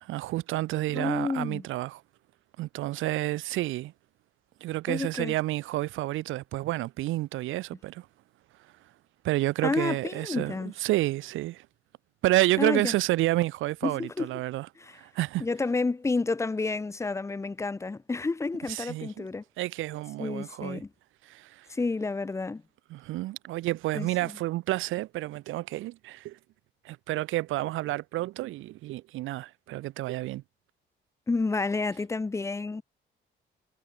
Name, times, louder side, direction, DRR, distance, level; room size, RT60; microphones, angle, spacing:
voice 1, 0.0-2.0 2.6-3.9 4.6-8.1 9.2-10.5 10.8-11.7 12.2-14.7 14.9-15.5 18.7-19.3 19.6-20.8 21.3-21.7 22.9-26.4 26.8-30.4, right 17 dB, 80° right, 0.6 m, -30 dB
voice 2, 0.9-1.7 4.9-5.3 9.6-10.7 12.6-12.9 13.8-14.3 14.8-15.0 15.4-19.4 20.2-20.9 21.7-22.6 23.9-24.4 31.3-32.8, left 3 dB, 15° left, 0.4 m, -30 dB
cardioid pair, 90°, 20 cm